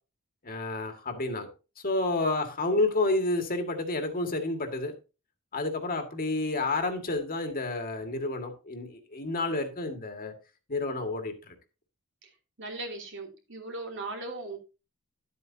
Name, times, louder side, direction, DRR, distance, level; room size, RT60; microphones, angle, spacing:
voice 1, 0.4-1.5 1.8-4.9 5.5-10.3 10.7-11.5, left 2 dB, 40° left, 1.9 m, -30 dB
voice 2, 12.6-14.6, right 2 dB, 60° right, 2.9 m, -38 dB
12.0 x 8.4 x 2.8 m
head